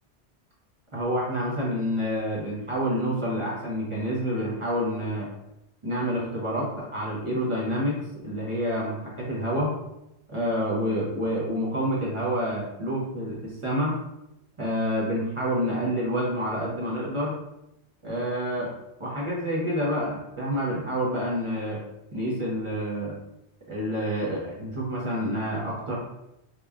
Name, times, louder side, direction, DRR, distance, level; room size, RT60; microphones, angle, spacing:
voice 1, 0.9-5.3 5.8-8.0 8.2-9.7 10.3-14.0 14.6-17.4 18.0-18.7 19.0-21.8 22.1-23.2 23.7-26.0, equal, 35° right, -5 dB, 0.6 m, -28 dB
2.9 x 2.2 x 2.3 m, 0.86 s
omnidirectional pair, 1.1 m